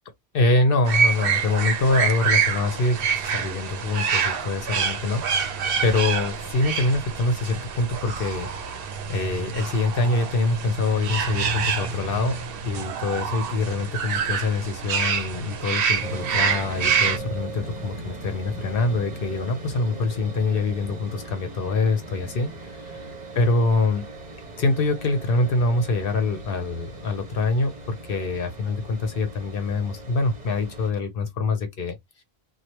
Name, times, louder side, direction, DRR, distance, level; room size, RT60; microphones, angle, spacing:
voice 1, 0.3-8.5 9.1-23.0 23.3-24.1 24.6-32.0, left 3 dB, 60° left, 0.9 m, -25 dB
sound 1, 0.9-17.2, right 6 dB, 65° right, 0.8 m, -26 dB
sound 2, 16.0-30.9, right 2 dB, 45° right, 0.9 m, -39 dB
3.1 x 2.3 x 2.8 m
omnidirectional pair, 1.1 m